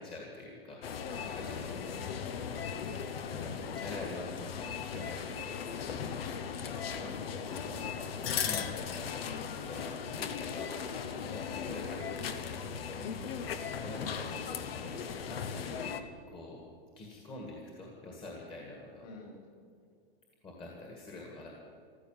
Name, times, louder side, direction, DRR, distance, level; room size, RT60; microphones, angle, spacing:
voice 1, 0.0-2.3 3.2-5.6 5.9-6.2 7.0-7.7 8.1-9.9 10.1-10.7 11.1-12.1 12.6-12.8 13.8-14.5 14.8-16.0 16.3-16.6 17.0-19.1 20.4-21.5, left 2 dB, 15° left, -1 dB, 1.9 m, -46 dB
sound 1, 0.8-16.0, left 7 dB, 85° left, 1.2 m, -38 dB
voice 2, 1.1-1.7 1.9-2.0 6.9-7.1 11.0-12.2 13.0-13.4 19.0-19.5, left 3 dB, 40° left, 1 dB, 4.6 m, -50 dB
14.5 x 13.0 x 7.4 m, 2.3 s
supercardioid pair, 155°, 29 cm